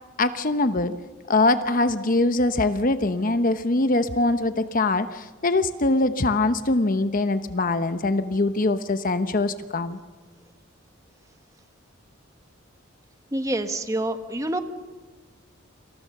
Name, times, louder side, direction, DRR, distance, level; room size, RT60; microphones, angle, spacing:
voice 1, 0.2-0.9 1.3-10.0, left 2 dB, 40° left, 10 dB, 0.9 m, -23 dB
voice 2, 13.3-14.6, right 1 dB, 15° right, 8 dB, 1.4 m, -27 dB
29.0 x 26.5 x 6.7 m, 1.3 s
head